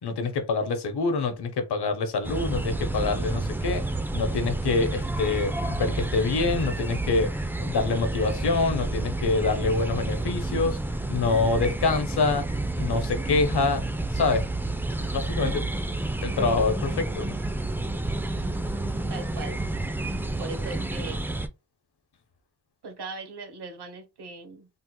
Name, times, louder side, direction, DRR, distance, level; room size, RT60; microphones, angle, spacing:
voice 1, 0.0-3.8 4.1-10.8 11.1-12.5 12.7-13.8 14.1-14.4 15.0-15.7 16.2-17.4, left 4 dB, 75° left, 0.8 m, -26 dB
sound 1, 2.2-21.5, right 2 dB, 5° right, 0.3 m, -30 dB
voice 2, 19.1-19.6 20.4-21.3 22.8-24.7, right 3 dB, 80° right, 1.0 m, -39 dB
3.4 x 2.8 x 2.2 m
cardioid pair, 55°, 40 cm